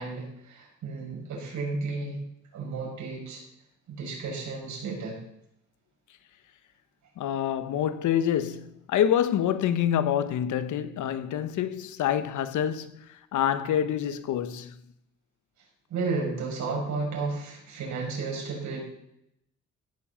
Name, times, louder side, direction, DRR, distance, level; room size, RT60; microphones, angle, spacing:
voice 1, 0.0-2.2 2.5-3.4 3.9-5.2 15.9-18.8, right 4 dB, 70° right, 6.3 m, -33 dB
voice 2, 7.2-14.7, left 10 dB, 75° left, 1.1 m, -27 dB
16.0 x 7.2 x 7.1 m
cardioid pair, 90°, 30 cm